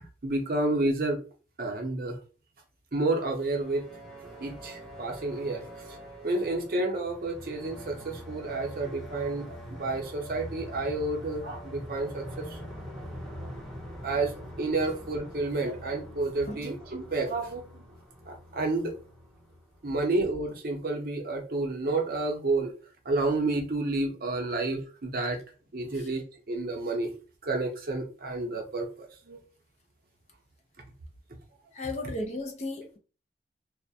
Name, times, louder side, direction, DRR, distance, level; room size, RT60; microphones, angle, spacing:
voice 1, 0.2-1.2 1.6-2.2 2.9-3.8 4.4-12.6 13.2-13.3 14.0-14.3 14.6-17.8 18.3-18.9 19.8-22.7 23.0-25.4 25.7-27.1 27.4-29.4, right 2 dB, 55° right, 0.6 m, -30 dB
sound 1, 3.4-20.2, equal, ahead, 0.7 m, -44 dB
voice 2, 31.7-33.0, left 2 dB, 40° left, 0.4 m, -36 dB
2.3 x 2.1 x 2.6 m
head